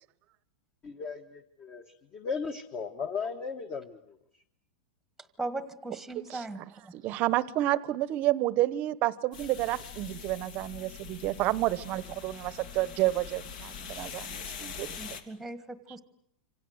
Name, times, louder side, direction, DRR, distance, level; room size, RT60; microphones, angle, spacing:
voice 1, 0.8-1.8 2.1-4.0, left 5 dB, 25° left, 7 dB, 1.6 m, -36 dB
voice 2, 5.4-6.9 15.0-16.0, right 2 dB, ahead, 12 dB, 1.5 m, -38 dB
voice 3, 6.9-15.0, right 16 dB, 30° right, 17 dB, 1.0 m, -30 dB
sound 1, 9.3-15.2, left 7 dB, 60° left, 2.8 m, -43 dB
27.5 x 25.5 x 8.0 m, 0.72 s
supercardioid pair, 160°, 5 cm